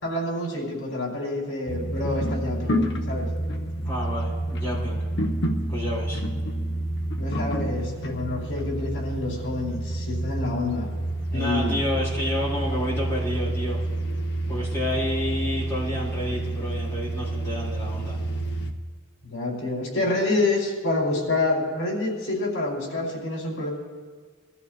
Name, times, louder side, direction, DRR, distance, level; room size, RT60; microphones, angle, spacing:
voice 1, 0.0-3.3 7.2-10.9 11.3-11.8 19.2-23.7, left 2 dB, 70° left, -3 dB, 4.3 m, -27 dB
sound 1, 1.7-18.7, right 1 dB, 55° left, 0.9 m, -29 dB
voice 2, 3.8-5.1 5.7-6.2 11.3-13.8 14.5-18.2, left 1 dB, 15° left, -9 dB, 5.0 m, -30 dB
23.0 x 13.5 x 2.5 m, 1.6 s
head